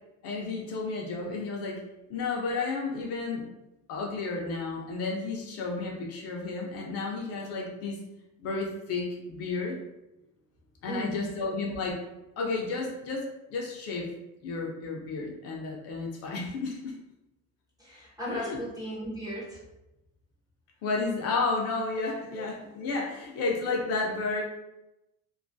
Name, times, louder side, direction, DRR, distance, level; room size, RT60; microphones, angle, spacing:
voice 1, 0.2-1.8 2.1-3.5 3.9-8.0 8.4-9.8 10.8-12.0 12.4-14.1 14.4-16.9 18.3-18.6 20.8-24.4, left 3 dB, 45° left, -1 dB, 0.4 m, -32 dB
voice 2, 10.9-11.3 17.8-19.6, equal, 10° right, -7 dB, 0.5 m, -36 dB
2.4 x 2.3 x 2.5 m, 0.94 s
cardioid pair, 170°, 34 cm